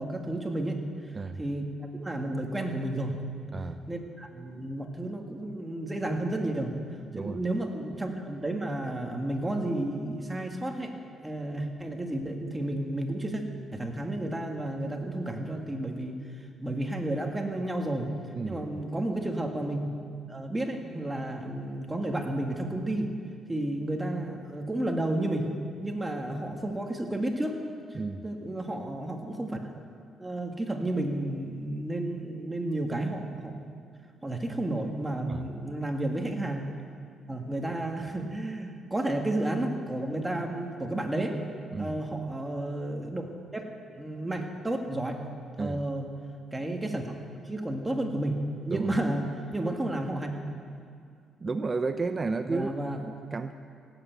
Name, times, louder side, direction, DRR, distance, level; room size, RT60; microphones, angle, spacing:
voice 1, 0.0-3.2 3.9-6.8 7.1-10.9 11.2-13.4 13.7-18.1 18.4-19.9 20.3-23.1 23.5-25.5 25.8-27.6 27.9-29.7 30.2-33.6 34.2-36.7 37.3-41.4 41.8-45.2 45.6-46.1 46.5-47.1 47.5-49.3 49.5-50.3 52.5-53.0, right 1 dB, 15° right, 2 dB, 1.9 m, -32 dB
voice 2, 3.5-3.8 7.1-7.4 18.4-18.8 27.9-28.2 35.3-35.4 41.7-42.0 45.6-45.8 48.7-48.9 51.4-53.5, right 3 dB, 30° right, 9 dB, 0.6 m, -32 dB
17.0 x 8.3 x 9.2 m, 2.3 s
cardioid pair, 90°, 0 cm